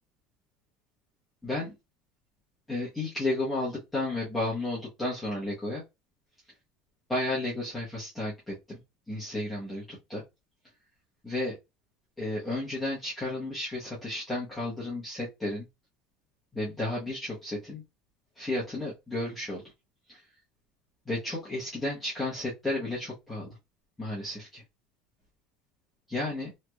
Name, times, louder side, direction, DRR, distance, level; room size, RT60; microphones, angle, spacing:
voice 1, 1.4-1.7 2.7-5.8 7.1-8.8 9.1-10.2 11.2-11.6 12.2-15.7 16.5-17.8 18.4-19.6 20.1-20.2 21.1-23.6 24.0-24.6 26.1-26.5, left 2 dB, 5° left, -8 dB, 0.9 m, -32 dB
3.2 x 3.1 x 2.2 m, 0.23 s
cardioid pair, 180°, 0 cm